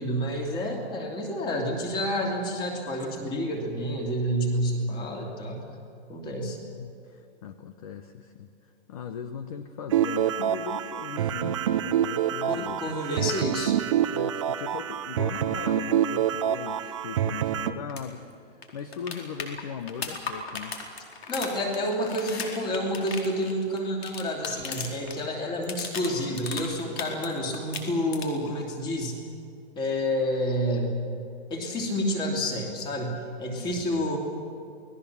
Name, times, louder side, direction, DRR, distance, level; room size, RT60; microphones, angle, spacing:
voice 1, 0.0-5.6 6.1-6.6 12.5-13.8 21.3-29.2 29.8-31.0 31.5-34.2, equal, 15° left, 2 dB, 2.8 m, -29 dB
voice 2, 6.3-12.9 14.1-20.8 33.5-34.0, left 7 dB, 35° left, 10 dB, 0.9 m, -39 dB
sound 1, 9.9-17.7, right 10 dB, 30° right, 0.7 m, -27 dB
sound 2, 17.9-18.0 18.3-18.4 18.6-25.2 25.5-27.3 27.5-28.5 30.5-30.6, left 5 dB, 65° left, 4.4 m, -36 dB
28.5 x 20.0 x 7.1 m, 2.6 s
hypercardioid pair, 170°, 33 cm